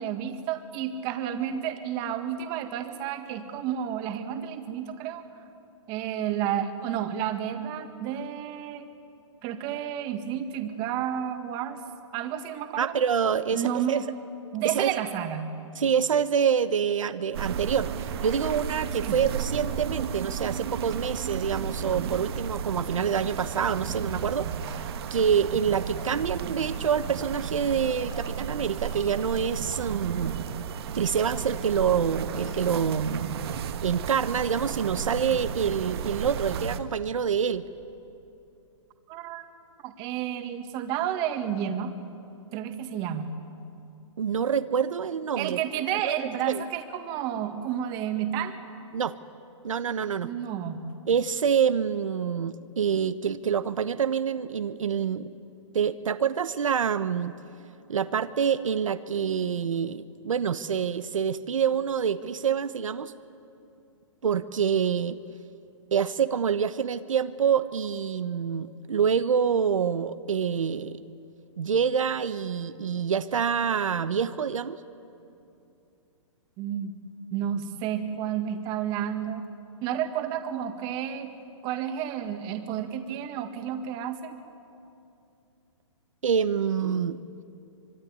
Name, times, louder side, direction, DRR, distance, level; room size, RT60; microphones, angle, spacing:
voice 1, 0.0-5.2 5.9-8.9 9.4-11.8 12.1-12.9 13.5-14.0 14.5-15.5 19.0-19.2 39.1-39.4 39.8-41.9 42.5-43.3 45.4-48.6 50.2-50.9 76.6-76.9 77.3-79.5 79.8-81.3 81.6-84.4, right 9 dB, 30° right, 7 dB, 1.9 m, -31 dB
voice 2, 12.8-14.0 14.7-14.9 15.8-24.8 25.1-30.3 30.9-33.3 33.8-37.6 44.2-45.6 46.0-46.1 46.5-46.6 48.9-49.1 49.6-50.3 51.1-55.3 55.7-57.3 57.9-63.1 64.2-65.2 65.9-71.0 71.6-74.8 86.2-87.2, right 7 dB, 85° right, 11 dB, 1.1 m, -26 dB
sound 1, 17.3-36.8, right 7 dB, 50° right, 1.6 m, -33 dB
sound 2, 24.6-25.1 25.8-26.3 26.7-27.0 27.8-28.5 28.9-29.2 30.1-30.4 31.1-31.5 32.3-33.0 33.4-33.9 34.5-35.1, left 6 dB, 15° left, 2.0 m, -50 dB
25.5 x 22.0 x 9.7 m, 2.7 s
hypercardioid pair, 150°, 16 cm